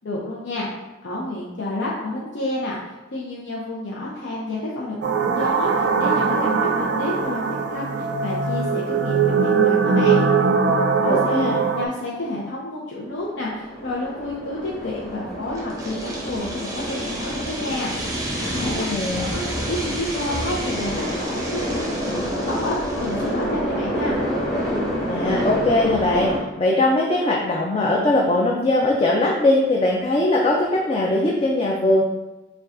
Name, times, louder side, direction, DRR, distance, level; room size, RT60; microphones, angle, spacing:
voice 1, 0.0-0.7 1.0-7.4 7.7-10.2 10.7-17.9 18.5-22.8 23.0-24.2, left 1 dB, 75° left, -5 dB, 0.6 m, -30 dB
sound 1, 5.0-11.8, right 5 dB, 65° right, 0.3 m, -20 dB
voice 2, 11.1-11.6 18.6-19.3 25.1-26.3 26.6-32.0, left 2 dB, 30° left, -2 dB, 0.4 m, -20 dB
sound 2, 13.2-26.4, equal, ahead, 1.3 m, -28 dB
sound 3, 15.6-23.4, right 1 dB, 20° right, 0.6 m, -34 dB
6.7 x 2.3 x 2.5 m, 1.1 s
head